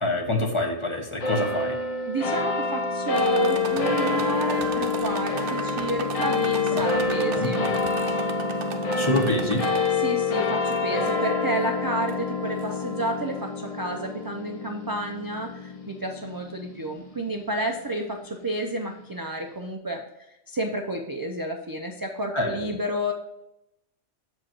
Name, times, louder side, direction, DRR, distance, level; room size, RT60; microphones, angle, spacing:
voice 1, 0.0-1.8 6.7-6.8 7.3-7.7 8.9-9.6 22.3-22.7, left 2 dB, 25° left, 2 dB, 0.9 m, -26 dB
sound 1, 1.2-17.9, left 4 dB, 45° left, 0.5 m, -27 dB
voice 2, 2.1-7.7 9.9-20.0 20.5-23.1, right 1 dB, 35° right, 2 dB, 0.3 m, -30 dB
sound 2, 3.1-10.2 10.7-11.3 12.1-12.2 12.6-12.7, right 7 dB, 75° right, 1.0 m, -37 dB
7.4 x 5.0 x 4.5 m, 0.88 s
omnidirectional pair, 1.2 m